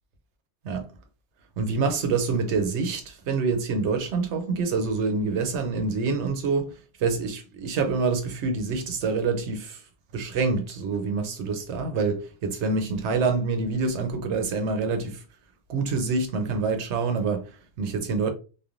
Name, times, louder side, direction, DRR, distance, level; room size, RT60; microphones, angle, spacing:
voice 1, 1.6-9.8 10.1-15.2 15.7-18.3, right 4 dB, 80° right, 1.0 m, -26 dB
3.1 x 2.2 x 2.4 m
omnidirectional pair, 1.1 m